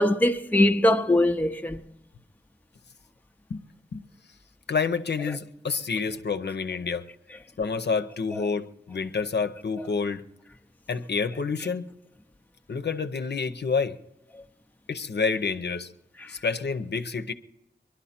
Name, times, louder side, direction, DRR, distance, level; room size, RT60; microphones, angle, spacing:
voice 1, 0.0-1.8 9.8-9.9 16.2-16.3, left 1 dB, 10° left, 0.6 m, -22 dB
voice 2, 4.7-7.1 7.6-10.2 10.9-11.9 12.7-14.0 14.9-15.9 16.3-17.3, left 5 dB, 65° left, 0.7 m, -28 dB
22.5 x 11.5 x 4.3 m
wide cardioid pair, 75°, 19 cm